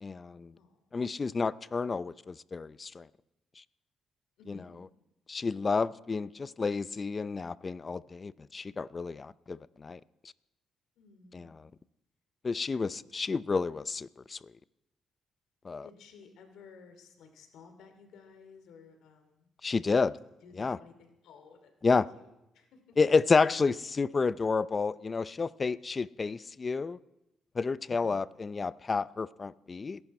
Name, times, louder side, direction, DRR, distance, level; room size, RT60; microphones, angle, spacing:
voice 1, 0.0-0.5 0.9-3.1 4.5-4.6 5.3-10.0 11.3-11.5 12.4-14.4 15.6-15.9 19.6-20.2 20.6-20.8 21.8-22.1 23.0-27.0 27.5-30.0, left 4 dB, 30° left, 0.5 m, -30 dB
voice 2, 0.5-0.9 4.4-4.8 11.0-11.5 15.8-19.5 20.4-23.0, left 5 dB, 80° left, 2.7 m, -55 dB
29.5 x 11.0 x 4.3 m
cardioid pair, 90°, 0 cm